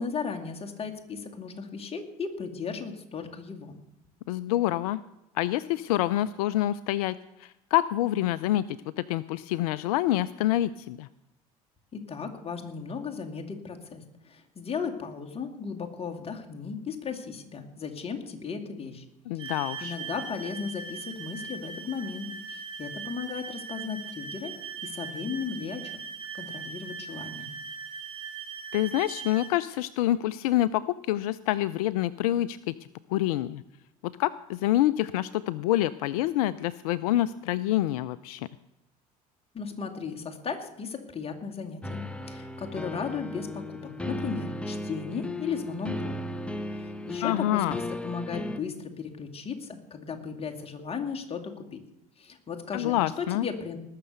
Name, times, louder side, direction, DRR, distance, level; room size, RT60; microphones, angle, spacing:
voice 1, 0.0-3.8 11.9-19.0 19.4-24.6 24.8-26.0 26.3-27.5 39.5-46.3 46.7-51.8 52.2-53.8, left 5 dB, 30° left, 4 dB, 2.3 m, -36 dB
voice 2, 4.3-5.0 5.3-11.1 19.3-19.9 28.7-32.7 33.1-33.6 34.0-38.5 47.2-47.8 52.7-53.5, left 14 dB, 75° left, 18 dB, 0.5 m, -27 dB
sound 1, 19.4-29.5, right 6 dB, 20° right, 4.9 m, -40 dB
sound 2, 41.8-48.6, left 1 dB, 5° left, 1.1 m, -36 dB
19.5 x 6.7 x 6.8 m, 0.91 s
hypercardioid pair, 70°, 19 cm